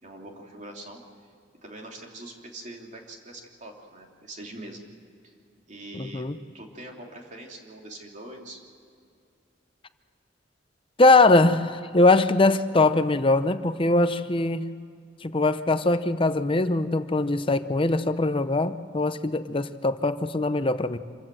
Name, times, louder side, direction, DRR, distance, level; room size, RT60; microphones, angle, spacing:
voice 1, 0.0-1.0 1.6-4.8 5.2-5.3 5.6-6.3 6.5-8.6, right 1 dB, 40° right, 1 dB, 3.2 m, -43 dB
voice 2, 5.9-6.4 11.0-14.6 15.2-21.0, left 2 dB, 30° left, 11 dB, 0.7 m, -21 dB
26.5 x 15.5 x 7.7 m, 2.4 s
head